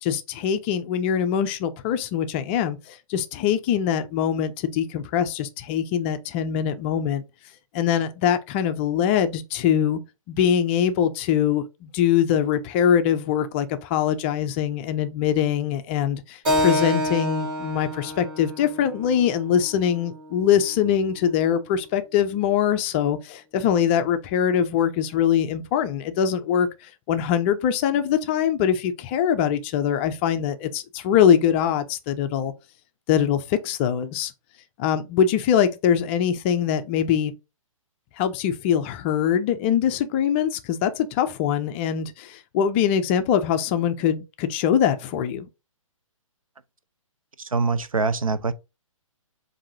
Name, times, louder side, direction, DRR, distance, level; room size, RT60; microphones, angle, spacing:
voice 1, 0.0-7.2 7.7-10.0 10.3-32.5 33.1-34.3 34.8-37.3 38.2-45.5, left 9 dB, 20° left, 0.4 m, -23 dB
Keyboard (musical), 16.4-21.5, left 1 dB, 40° right, 2.4 m, -29 dB
voice 2, 47.4-48.5, right 4 dB, 80° right, 0.6 m, -24 dB
7.2 x 2.6 x 2.6 m
figure-of-eight pair, 130°, 18 cm